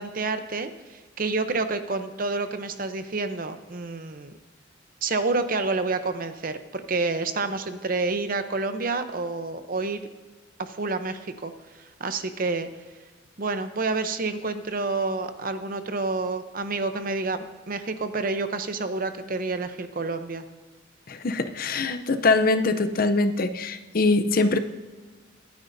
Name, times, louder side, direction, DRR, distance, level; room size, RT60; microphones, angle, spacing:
voice 1, 0.0-4.3 5.0-10.0 10.6-11.5 12.0-12.7 13.4-20.4, right 3 dB, 45° right, 9 dB, 0.8 m, -28 dB
voice 2, 21.1-24.6, left 3 dB, 50° left, 10 dB, 0.6 m, -23 dB
24.0 x 9.5 x 2.7 m, 1.3 s
head